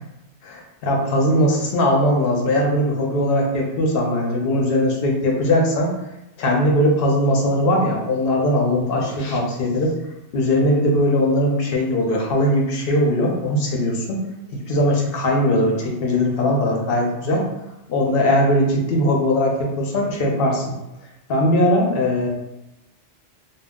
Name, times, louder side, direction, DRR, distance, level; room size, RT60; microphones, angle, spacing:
voice 1, 0.4-5.9 6.4-10.0 10.3-14.2 14.5-17.5 17.9-20.7 21.3-22.3, left 1 dB, 60° left, 0 dB, 0.7 m, -20 dB
2.2 x 2.0 x 3.5 m, 0.94 s
omnidirectional pair, 1.2 m